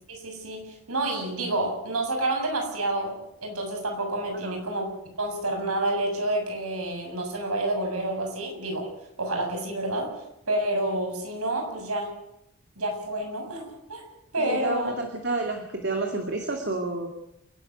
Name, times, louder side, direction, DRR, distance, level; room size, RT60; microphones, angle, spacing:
voice 1, 0.1-3.1 3.4-4.9 5.2-8.9 9.2-10.1 10.5-12.1 12.8-14.0 14.3-14.9, right 1 dB, 85° right, 3 dB, 7.4 m, -29 dB
voice 2, 14.4-17.1, right 2 dB, 50° right, 3 dB, 2.5 m, -30 dB
29.0 x 12.5 x 9.5 m, 0.81 s
head